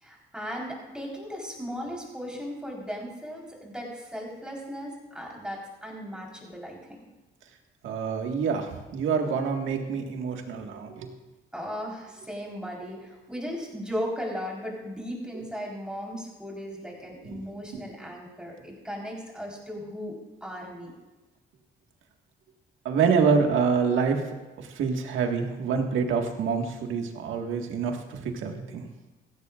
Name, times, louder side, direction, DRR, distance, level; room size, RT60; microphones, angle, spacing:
voice 1, 0.0-7.0 11.5-20.9, equal, 5° right, -2 dB, 4.1 m, -37 dB
voice 2, 7.8-11.1 17.2-17.4 22.9-24.2 24.6-28.8, right 5 dB, 80° right, 3 dB, 1.8 m, -26 dB
16.0 x 14.5 x 2.5 m, 1.1 s
cardioid pair, 90°, 20 cm